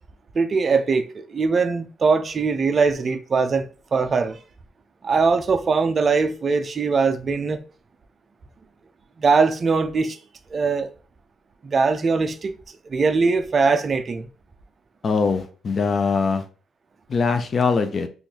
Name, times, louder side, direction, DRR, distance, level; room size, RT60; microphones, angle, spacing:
voice 1, 0.3-4.4 5.0-7.6 9.2-10.2 10.5-10.9 11.6-12.5 12.9-14.3, right 4 dB, 40° right, 0.5 m, -21 dB
voice 2, 15.0-16.4 17.1-18.1, left 4 dB, 45° left, 0.5 m, -22 dB
3.7 x 2.5 x 2.9 m
cardioid pair, 95°, 0 cm